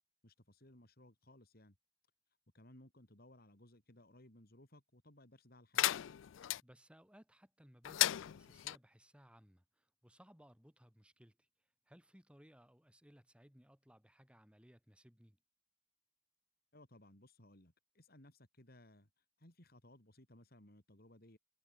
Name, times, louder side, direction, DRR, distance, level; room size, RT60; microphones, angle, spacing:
voice 1, 0.2-1.8 2.5-5.9 16.7-19.1 19.4-21.4, left 1 dB, 50° left, 4.6 m, -61 dB
sound 1, 5.7-6.6 7.8-8.8, left 14 dB, 75° left, 0.4 m, -35 dB
voice 2, 6.6-11.5 11.9-15.4, equal, 5° right, 2.7 m, -63 dB
head